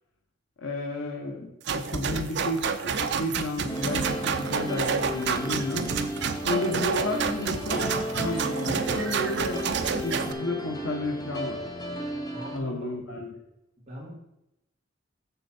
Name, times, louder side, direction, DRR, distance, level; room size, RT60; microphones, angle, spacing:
voice 1, 0.6-5.9 6.4-7.9 8.2-9.6 10.0-11.6 12.5-13.4, left 2 dB, 90° left, 1 dB, 1.1 m, -32 dB
sound 1, 1.7-10.3, right 6 dB, 60° right, 0.5 m, -29 dB
sound 2, 3.7-12.6, equal, 20° left, 1.0 m, -34 dB
voice 2, 12.3-12.9 13.9-14.1, equal, 30° right, -6 dB, 2.3 m, -40 dB
7.0 x 6.9 x 4.3 m, 0.87 s
head